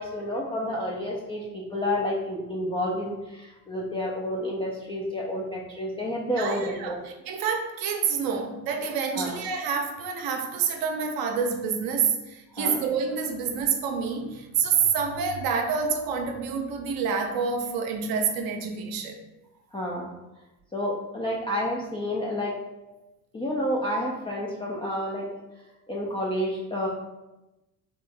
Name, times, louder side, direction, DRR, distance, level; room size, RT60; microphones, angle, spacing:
voice 1, 0.0-7.0 9.1-9.3 12.6-12.8 19.7-20.1 20.7-22.5 23.3-25.2 25.9-26.9, left 1 dB, 10° left, -4 dB, 0.3 m, -30 dB
voice 2, 6.4-6.9 7.3-19.2, right 6 dB, 45° right, 4 dB, 0.7 m, -27 dB
3.3 x 3.0 x 3.2 m, 1.0 s
figure-of-eight pair, 60°, 50 cm